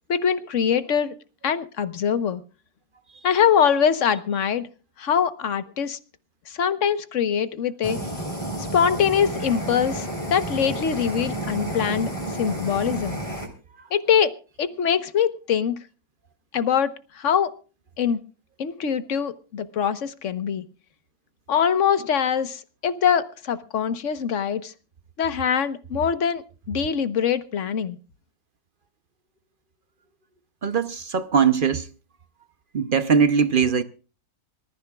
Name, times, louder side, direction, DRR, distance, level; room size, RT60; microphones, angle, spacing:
voice 1, 0.1-1.1 1.4-2.4 3.2-4.7 5.0-6.0 6.6-8.0 8.7-12.1 12.4-13.2 13.9-15.8 16.5-16.9 17.2-17.5 18.0-18.2 18.6-20.6 21.5-24.7 25.2-28.0, left 8 dB, 50° left, 1.2 m, -23 dB
Fire, 7.8-13.5, right 1 dB, 20° left, 3.9 m, -31 dB
voice 2, 30.6-31.9 32.7-33.8, right 6 dB, 55° right, 0.5 m, -20 dB
25.5 x 14.5 x 2.3 m
omnidirectional pair, 1.9 m